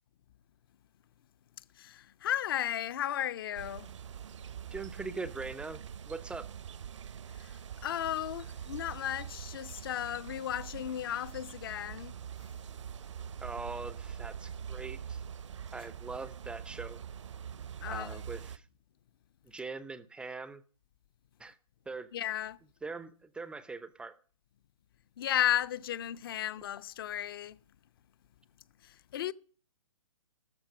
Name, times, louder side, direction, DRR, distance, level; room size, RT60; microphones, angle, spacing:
voice 1, 1.8-3.9 7.4-7.5 7.8-12.1 17.8-18.2 22.1-22.6 25.2-27.6 28.8-29.3, left 12 dB, 40° left, 0.7 m, -34 dB
sound 1, 3.5-18.6, right 8 dB, 60° right, 1.0 m, -44 dB
voice 2, 4.7-5.8 6.1-6.5 13.4-15.2 15.7-17.0 17.9-18.7 19.5-20.6 21.4-21.6 21.9-22.1 22.8-24.2, right 4 dB, 5° right, 0.6 m, -41 dB
14.0 x 14.0 x 5.2 m
figure-of-eight pair, 130°, 18 cm